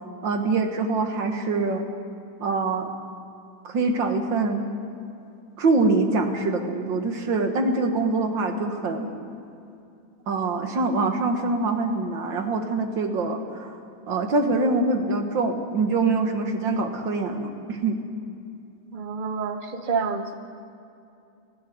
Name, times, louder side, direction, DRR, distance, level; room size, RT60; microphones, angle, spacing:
voice 1, 0.2-1.8 2.4-2.9 3.6-4.6 5.6-9.1 10.3-13.8 14.1-18.0, right 3 dB, 65° right, 5 dB, 2.3 m, -24 dB
voice 2, 18.9-20.3, right 5 dB, 30° right, 7 dB, 1.0 m, -28 dB
19.0 x 15.5 x 9.3 m, 2.6 s
omnidirectional pair, 2.2 m